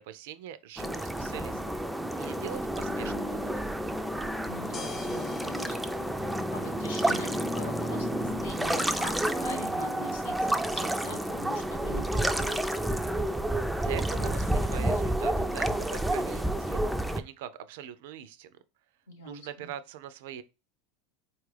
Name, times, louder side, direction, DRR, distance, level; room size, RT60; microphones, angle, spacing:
voice 1, 0.0-3.7 13.8-16.9 17.2-18.6 19.2-20.4, right 9 dB, 70° right, 0.4 m, -42 dB
sound 1, 0.8-17.2, right 1 dB, 5° right, 0.4 m, -30 dB
sound 2, 4.3-16.4, left 4 dB, 25° left, 0.8 m, -50 dB
voice 2, 4.5-5.9 6.5-12.8 19.1-19.7, left 2 dB, 85° left, 1.2 m, -43 dB
4.3 x 2.3 x 3.2 m
hypercardioid pair, 95°, 0 cm